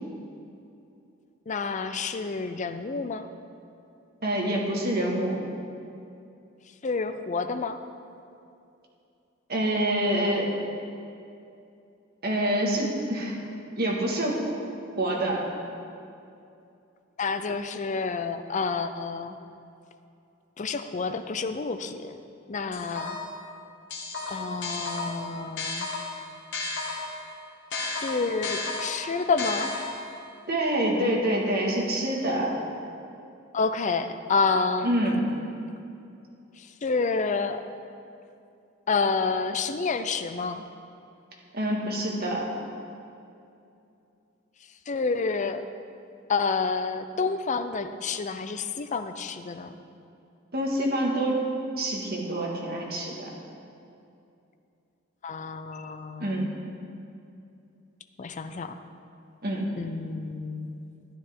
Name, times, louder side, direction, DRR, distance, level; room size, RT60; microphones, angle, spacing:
voice 1, 1.5-3.3 6.8-7.8 17.2-19.4 20.6-22.2 22.5-23.2 24.3-25.9 27.9-29.7 33.5-34.9 36.6-37.6 38.9-40.6 44.9-45.6 46.3-49.8 55.2-56.5 58.2-58.8 59.8-60.7, left 4 dB, 40° left, 9 dB, 0.5 m, -29 dB
voice 2, 4.2-5.4 9.5-10.5 12.2-13.4 13.8-14.7 15.0-15.4 30.5-32.5 34.8-35.2 41.5-42.5 50.5-51.4 51.8-53.2 56.2-56.5 59.4-59.7, right 1 dB, 50° right, -2 dB, 1.7 m, -26 dB
sound 1, 22.7-23.4 23.9-27.2 27.7-30.2, left 3 dB, 60° left, 1.5 m, -33 dB
12.0 x 10.0 x 3.7 m, 2.6 s
head